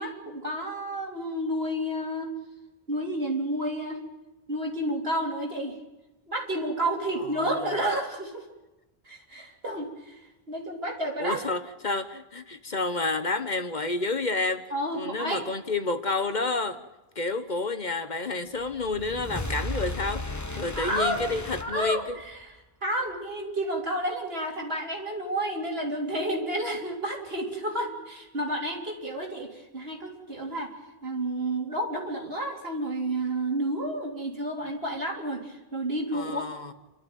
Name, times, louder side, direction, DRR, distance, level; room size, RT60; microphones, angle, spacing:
voice 1, 0.0-2.3 2.9-4.0 4.5-5.8 6.3-8.4 9.1-10.1 10.5-11.4 14.7-15.4 20.7-21.2 21.6-22.5 22.8-30.7 31.0-36.4, right 1 dB, 75° right, 3.7 m, -30 dB
voice 2, 7.2-7.8 11.2-14.6 14.9-16.8 17.1-22.2 36.1-36.7, left 3 dB, 45° left, 1.3 m, -30 dB
sound 1, 18.6-22.4, left 2 dB, 20° left, 1.0 m, -35 dB
29.0 x 13.0 x 9.2 m
omnidirectional pair, 1.0 m